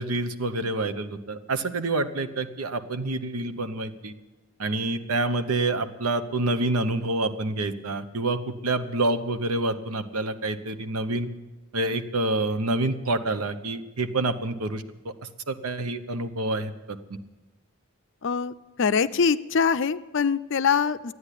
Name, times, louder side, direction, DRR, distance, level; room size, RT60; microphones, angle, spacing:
voice 1, 0.0-4.1 4.6-11.3 11.7-15.1 15.5-17.0, right 2 dB, 85° right, 10 dB, 0.9 m, -27 dB
voice 2, 18.2-18.5 18.8-21.1, left 6 dB, 55° left, 13 dB, 0.4 m, -23 dB
13.5 x 9.6 x 9.9 m, 1.1 s
head